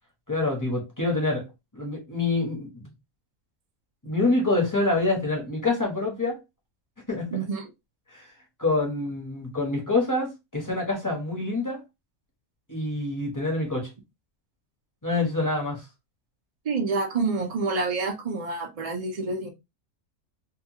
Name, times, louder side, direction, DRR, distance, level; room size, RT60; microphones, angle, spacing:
voice 1, 0.3-1.5 1.7-2.9 4.0-6.4 7.1-7.3 8.1-8.3 8.6-11.8 12.7-13.9 15.0-15.8, left 2 dB, 20° left, 0.7 m, -26 dB
voice 2, 7.3-7.6 16.6-19.5, right 4 dB, 50° right, 0.4 m, -28 dB
2.8 x 2.3 x 2.7 m
omnidirectional pair, 1.5 m